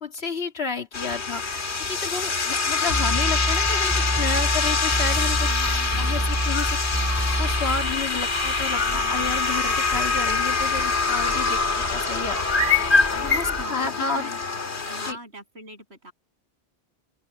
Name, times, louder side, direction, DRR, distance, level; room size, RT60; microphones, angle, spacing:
voice 1, 0.0-7.0 7.3-12.4 13.2-14.3 15.0-15.2, left 4 dB, 70° left, 2.4 m, -31 dB
sound 1, 0.9-15.1, left 4 dB, 85° left, 2.2 m, -25 dB
sound 2, 2.9-7.9, equal, 15° right, 5.0 m, -27 dB
sound 3, 5.3-13.6, left 3 dB, 35° left, 5.4 m, -28 dB
voice 2, 5.3-6.4 8.8-9.4 13.1-14.4 14.9-16.1, right 1 dB, 80° right, 8.1 m, -41 dB
open air
omnidirectional pair, 1.1 m